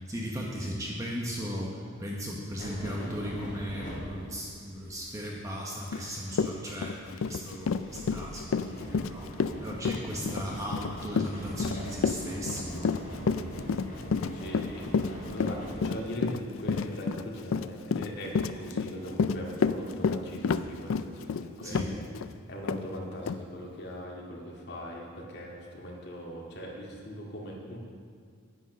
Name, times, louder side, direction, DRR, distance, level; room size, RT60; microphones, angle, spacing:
voice 1, 0.0-9.3 9.6-13.8 21.6-22.0, equal, 15° right, -2 dB, 1.1 m, -37 dB
sound 1, 2.6-4.8 5.1-5.2 5.5-16.0, equal, 40° left, 3.6 m, -42 dB
Run, 5.9-6.0 6.3-22.3 22.7-22.8 23.3-23.4, left 5 dB, 75° left, 0.4 m, -30 dB
voice 2, 14.3-22.0 22.5-27.8, equal, 55° left, -2 dB, 2.1 m, -40 dB
9.5 x 9.2 x 6.2 m, 2.2 s
head